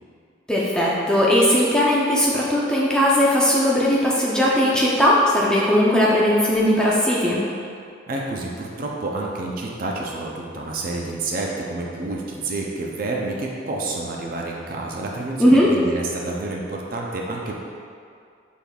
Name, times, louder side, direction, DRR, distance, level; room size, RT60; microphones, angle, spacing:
voice 1, 0.5-7.5 15.4-15.7, equal, 5° left, -6 dB, 0.5 m, -18 dB
voice 2, 8.1-17.5, right 2 dB, 45° right, -1 dB, 0.4 m, -29 dB
6.2 x 3.6 x 2.3 m, 2.3 s
head